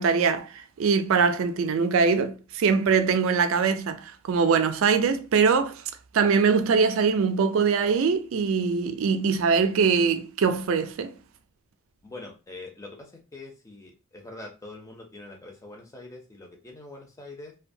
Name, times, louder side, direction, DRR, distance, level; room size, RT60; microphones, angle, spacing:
voice 1, 0.0-5.8 6.1-11.1, right 5 dB, 60° right, 0.3 m, -22 dB
voice 2, 12.0-17.5, left 2 dB, 15° left, 0.5 m, -44 dB
2.6 x 2.2 x 2.6 m
head